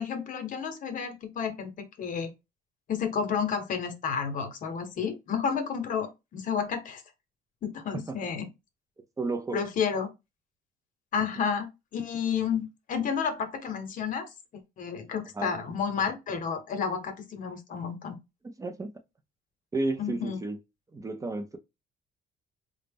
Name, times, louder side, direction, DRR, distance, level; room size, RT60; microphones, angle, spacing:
voice 1, 0.0-2.3 2.9-7.0 7.6-8.5 9.5-10.1 11.1-14.3 14.8-18.2 20.0-20.4, left 6 dB, 50° left, 0.9 m, -31 dB
voice 2, 9.2-9.6 15.4-15.5 18.4-18.9 19.7-20.6 20.9-21.6, right 2 dB, 20° right, 0.5 m, -32 dB
3.9 x 2.1 x 3.4 m
cardioid pair, 110°, 17 cm